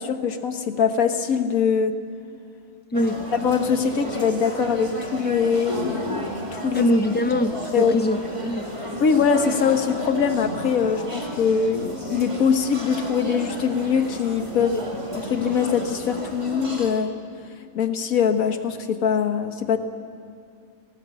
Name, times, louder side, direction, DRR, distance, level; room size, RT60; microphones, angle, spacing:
voice 1, 0.0-2.0 3.3-6.9 7.7-7.9 9.0-14.8 15.1-17.1 17.7-19.8, left 6 dB, 85° left, 7 dB, 1.6 m, -22 dB
voice 2, 2.9-3.3 6.7-8.2 8.4-8.7 14.7-14.8, left 1 dB, 15° left, 9 dB, 0.3 m, -22 dB
sound 1, 2.9-16.9, right 1 dB, 20° right, 2.2 m, -33 dB
18.5 x 18.5 x 7.7 m, 2.4 s
omnidirectional pair, 1.4 m